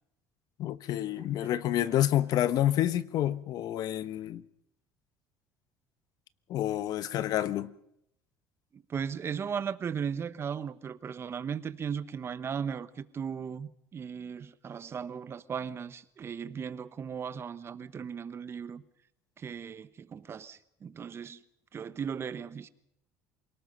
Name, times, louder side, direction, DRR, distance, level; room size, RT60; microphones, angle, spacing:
voice 1, 0.6-4.4 6.5-7.7, left 12 dB, 60° left, 1.2 m, -28 dB
voice 2, 1.2-1.6 1.9-2.0 8.7-18.8 19.4-21.4 21.7-22.7, right 7 dB, 35° right, 1.2 m, -37 dB
27.5 x 19.0 x 5.5 m
cardioid pair, 110°, 7 cm